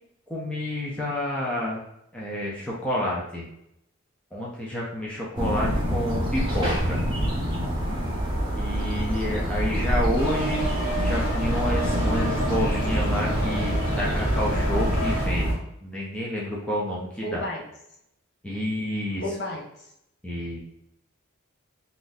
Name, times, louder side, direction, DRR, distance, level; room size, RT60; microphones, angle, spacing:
voice 1, 0.3-1.8 2.1-3.5 4.3-7.0 8.5-10.7 11.0-17.4 18.4-19.2 20.2-20.6, left 1 dB, 5° left, -5 dB, 0.5 m, -29 dB
sound 1, 5.3-15.5, equal, 20° right, 0.8 m, -26 dB
sound 2, 10.1-15.3, right 1 dB, 75° left, 1.2 m, -31 dB
voice 2, 17.2-17.6 19.2-19.9, left 1 dB, 50° left, -2 dB, 0.8 m, -32 dB
2.6 x 2.5 x 3.9 m, 0.77 s
head